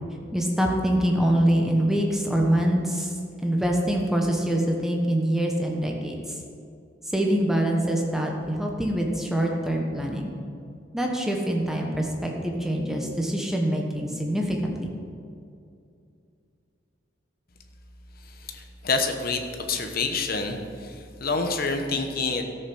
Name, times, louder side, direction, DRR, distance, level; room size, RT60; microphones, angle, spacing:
voice 1, 0.3-3.1 3.4-6.4 7.1-10.3 10.9-14.9, right 1 dB, ahead, 0 dB, 1.1 m, -24 dB
voice 2, 18.2-22.4, left 4 dB, 50° left, 5 dB, 1.1 m, -28 dB
13.5 x 6.7 x 6.3 m, 2.5 s
head